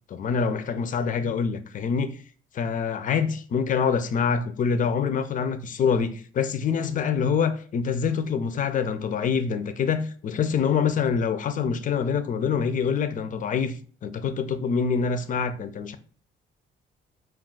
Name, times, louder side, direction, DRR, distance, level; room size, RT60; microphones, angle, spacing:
voice 1, 0.1-2.2 2.5-16.0, left 6 dB, 40° left, 0.4 m, -25 dB
2.3 x 2.3 x 3.8 m
cardioid pair, 90°, 20 cm